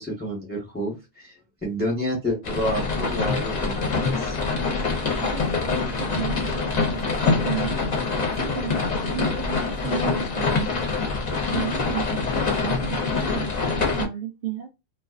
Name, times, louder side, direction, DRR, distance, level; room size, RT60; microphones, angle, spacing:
voice 1, 0.0-1.3 1.6-4.4, equal, 10° left, 0.9 m, -29 dB
sound 1, 2.4-14.1, left 4 dB, 45° left, 0.7 m, -25 dB
voice 2, 5.2-7.8 8.2-10.8 11.3-14.7, right 10 dB, 60° right, 0.7 m, -34 dB
2.4 x 2.3 x 2.4 m
omnidirectional pair, 1.2 m